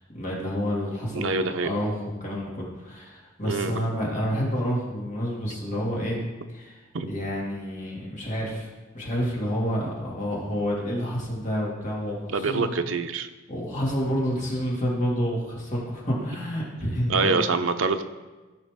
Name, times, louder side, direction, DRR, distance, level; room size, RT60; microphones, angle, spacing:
voice 1, 0.0-6.2 6.5-12.8 13.5-17.4, equal, 40° left, -4 dB, 2.3 m, -29 dB
voice 2, 1.1-1.7 3.4-3.8 6.9-7.1 12.3-13.3 17.1-18.0, right 4 dB, 85° right, 7 dB, 0.7 m, -25 dB
15.0 x 5.7 x 3.6 m, 1.2 s
head